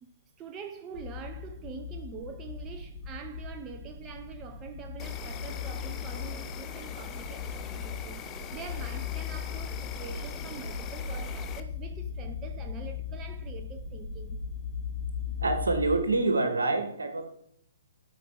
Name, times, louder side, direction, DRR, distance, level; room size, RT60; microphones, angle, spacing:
voice 1, 0.0-14.4, right 6 dB, 20° right, 0.7 m, -45 dB
sound 1, 0.9-16.0, left 6 dB, 50° left, 2.0 m, -38 dB
Insect, 5.0-11.6, left 8 dB, 20° left, 0.8 m, -43 dB
voice 2, 15.4-17.3, right 3 dB, 65° right, 1.9 m, -26 dB
12.0 x 5.2 x 4.7 m
figure-of-eight pair, 125°, 0 cm